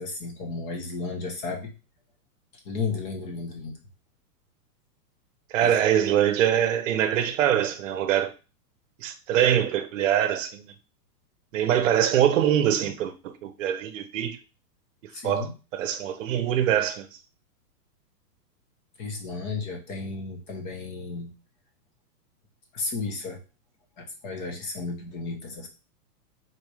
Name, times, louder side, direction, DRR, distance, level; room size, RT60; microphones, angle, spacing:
voice 1, 0.0-1.7 2.6-3.8 5.6-5.8 15.1-15.5 19.0-21.3 22.7-23.4 24.0-25.7, left 4 dB, 30° left, 0.9 m, -33 dB
voice 2, 5.5-8.3 9.0-10.6 11.5-14.4 15.2-15.5 15.7-17.1, right 10 dB, 50° right, 0.9 m, -23 dB
4.2 x 2.7 x 4.7 m
hypercardioid pair, 160°, 48 cm